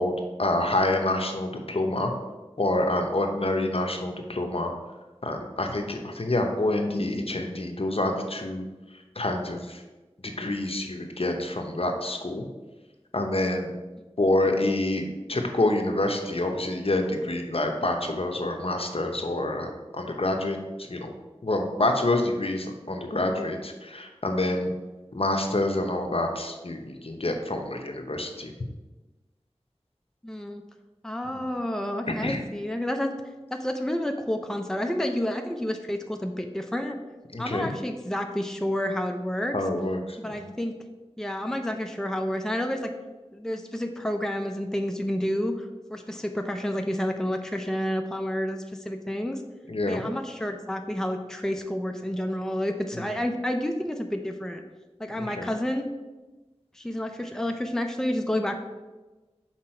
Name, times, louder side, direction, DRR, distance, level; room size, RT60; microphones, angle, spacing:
voice 1, 0.0-2.1 2.6-4.7 5.2-8.6 9.2-9.8 10.2-12.5 13.1-13.7 14.2-21.1 21.4-24.7 25.1-28.5 32.2-32.4 37.3-37.7 39.5-40.5 49.7-50.0 53.0-53.1 55.2-55.5, left 1 dB, 60° left, 3 dB, 0.8 m, -27 dB
voice 2, 30.2-30.6 31.0-33.1 33.5-37.0 37.4-39.5 40.2-40.7 41.2-42.9 43.3-49.4 49.9-54.6 55.0-55.9 56.7-58.6, left 1 dB, 5° left, 4 dB, 0.6 m, -30 dB
5.9 x 4.7 x 4.4 m, 1.2 s
wide cardioid pair, 40°, 11 cm